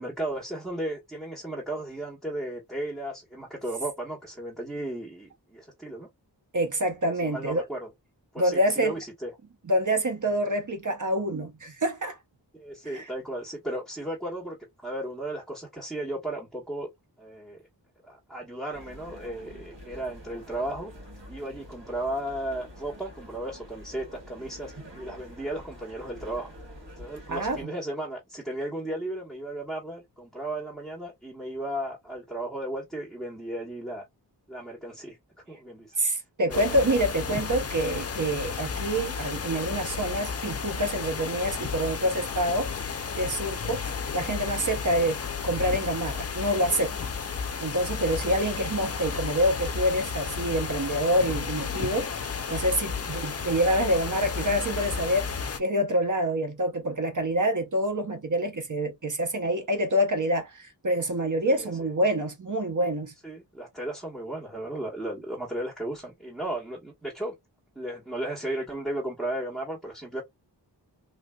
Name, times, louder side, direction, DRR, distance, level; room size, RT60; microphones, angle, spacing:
voice 1, 0.0-6.1 7.2-7.9 8.3-9.3 12.5-14.6 14.8-16.9 17.2-17.6 18.0-20.9 21.3-26.5 27.0-34.1 34.5-35.2 35.5-35.9 36.5-36.9 43.4-43.5 52.9-53.0 61.5-61.7 63.2-67.4 67.7-70.2, right 1 dB, ahead, 1.2 m, -35 dB
voice 2, 6.5-7.6 8.4-8.9 9.7-12.2 12.9-13.0 27.3-27.7 36.0-42.7 43.2-47.0 47.6-52.1 52.5-55.3 55.6-63.1, equal, 45° right, 0.8 m, -26 dB
sound 1, 18.7-27.6, equal, 85° right, 1.7 m, -46 dB
sound 2, 36.5-55.6, left 6 dB, 35° left, 0.5 m, -33 dB
3.3 x 2.5 x 2.2 m
wide cardioid pair, 70°, 42 cm